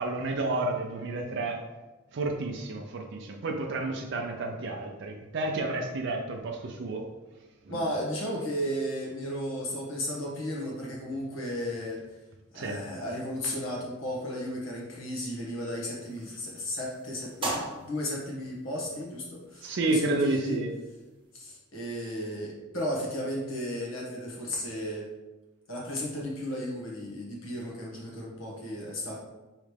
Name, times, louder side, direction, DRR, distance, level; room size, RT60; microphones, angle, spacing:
voice 1, 0.0-1.6 2.1-7.0 7.7-7.8 12.5-12.8 19.6-20.7, right 2 dB, 60° right, 1 dB, 0.5 m, -30 dB
voice 2, 7.7-12.0 12.5-20.6 21.3-25.1 25.7-29.2, equal, 75° left, -3 dB, 1.3 m, -34 dB
sound 1, 15.9-21.3, right 2 dB, 25° right, 0.7 m, -41 dB
4.8 x 3.2 x 3.3 m, 1.1 s
head